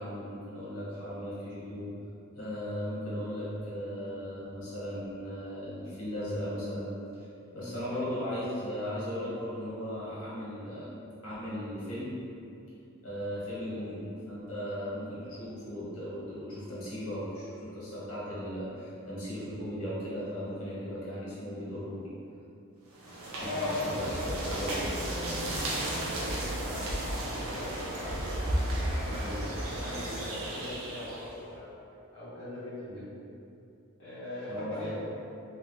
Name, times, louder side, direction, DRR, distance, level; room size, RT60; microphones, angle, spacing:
voice 1, 0.0-1.9 2.3-7.3 7.5-10.9 11.2-12.1 13.0-22.1 23.3-24.0 24.4-24.8 29.2-29.4 32.9-33.0 34.5-34.9, equal, 90° left, -10 dB, 1.4 m, -37 dB
voice 2, 7.5-8.1 23.3-28.2 28.9-31.6 32.1-33.0 34.0-34.9, left 1 dB, 70° left, -14 dB, 0.8 m, -40 dB
sound 1, 22.9-31.3, right 1 dB, 75° right, 0.6 m, -34 dB
3.3 x 2.3 x 3.1 m, 2.7 s
head